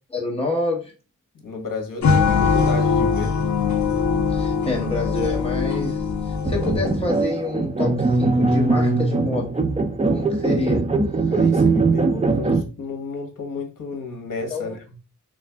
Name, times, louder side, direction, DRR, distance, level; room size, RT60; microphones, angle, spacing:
voice 1, 0.1-0.9 4.3-9.5 10.1-10.8 14.5-14.7, left 2 dB, 20° left, -1 dB, 1.1 m, -27 dB
voice 2, 1.4-3.3 11.3-14.8, left 3 dB, 75° left, 5 dB, 1.0 m, -32 dB
sound 1, 2.0-7.2, left 5 dB, 60° left, 0.6 m, -21 dB
sound 2, 6.4-12.6, right 3 dB, 20° right, 0.4 m, -21 dB
3.3 x 2.5 x 3.2 m, 0.33 s
wide cardioid pair, 135°, 33 cm